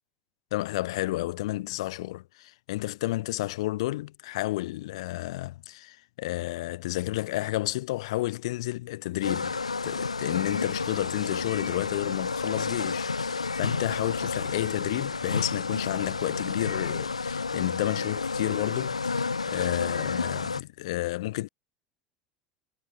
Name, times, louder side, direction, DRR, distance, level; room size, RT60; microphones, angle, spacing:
voice 1, 0.5-21.5, left 17 dB, 70° left, 1.4 m, -31 dB
sound 1, 9.2-20.6, left 4 dB, 90° left, 2.1 m, -31 dB
figure-of-eight pair, 75°, 3 cm